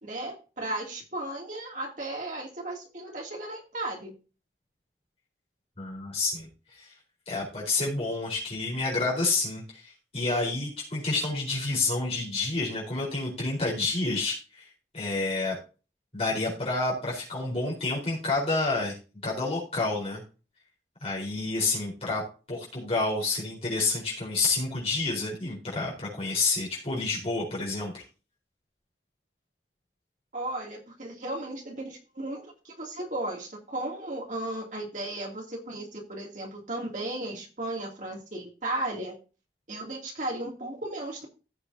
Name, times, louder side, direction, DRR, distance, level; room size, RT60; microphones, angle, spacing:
voice 1, 0.0-4.1 30.3-39.2 39.7-41.3, right 1 dB, 45° right, 0 dB, 3.0 m, -35 dB
voice 2, 5.8-6.9 7.3-14.7 14.9-15.6 16.1-18.9 19.2-20.2 21.0-22.2 22.5-28.0, left 3 dB, 35° left, -4 dB, 4.5 m, -29 dB
16.0 x 6.7 x 2.9 m, 0.34 s
head